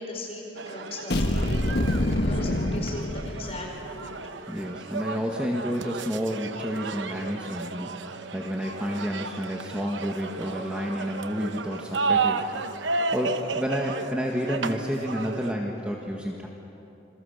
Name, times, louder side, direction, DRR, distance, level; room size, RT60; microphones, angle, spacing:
voice 1, 0.0-1.9 2.2-4.2, left 2 dB, 30° left, -1 dB, 5.2 m, -38 dB
sound 1, 0.6-15.5, right 4 dB, 80° right, 0.9 m, -33 dB
sound 2, 1.1-3.9, left 1 dB, 60° left, 1.4 m, -26 dB
voice 2, 4.5-12.5 13.1-16.5, equal, 5° right, -1 dB, 1.6 m, -30 dB
28.0 x 22.0 x 6.7 m, 2.9 s
head